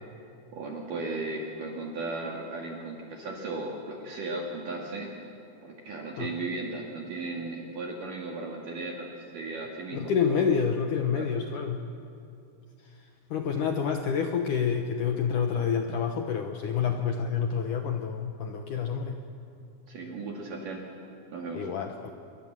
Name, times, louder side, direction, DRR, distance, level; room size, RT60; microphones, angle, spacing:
voice 1, 0.5-5.1 5.6-10.4 11.1-11.3 19.9-20.8 21.3-21.7, right 3 dB, 55° right, 0 dB, 3.2 m, -36 dB
voice 2, 9.9-11.8 12.8-19.2 21.5-22.1, left 6 dB, 75° left, 4 dB, 1.9 m, -28 dB
28.0 x 23.0 x 7.5 m, 2.6 s
omnidirectional pair, 5.1 m